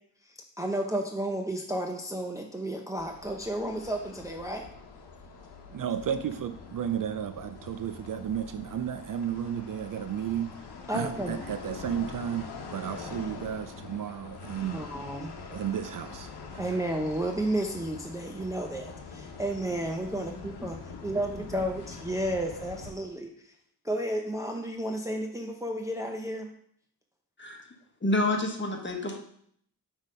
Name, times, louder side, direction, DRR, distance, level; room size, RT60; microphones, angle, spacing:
voice 1, 0.2-4.7 10.9-11.4 14.7-15.3 16.6-23.5 23.8-26.5, right 1 dB, 10° right, 2 dB, 0.6 m, -32 dB
sound 1, 3.0-22.9, left 4 dB, 80° left, 1.0 m, -44 dB
voice 2, 5.7-10.5 10.9-14.8 15.5-16.6, right 9 dB, 55° right, 10 dB, 0.5 m, -33 dB
voice 3, 28.0-29.2, left 2 dB, 30° left, 3 dB, 1.2 m, -28 dB
6.2 x 3.6 x 5.4 m, 0.65 s
cardioid pair, 85°, 39 cm